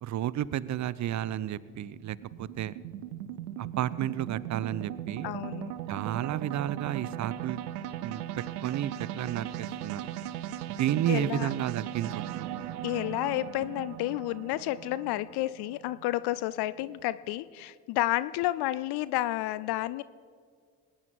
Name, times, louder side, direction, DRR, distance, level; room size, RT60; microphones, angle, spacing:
voice 1, 0.0-2.7 3.6-5.3 5.9-7.6 8.0-10.1 10.8-12.5, right 12 dB, 40° right, 19 dB, 0.6 m, -32 dB
sound 1, 1.0-17.1, right 11 dB, 80° right, 0.7 m, -39 dB
voice 2, 5.2-5.7 11.1-11.5 12.8-20.0, left 16 dB, 60° left, 17 dB, 0.5 m, -31 dB
20.5 x 9.8 x 4.7 m, 2.1 s
hypercardioid pair, 50°, 45 cm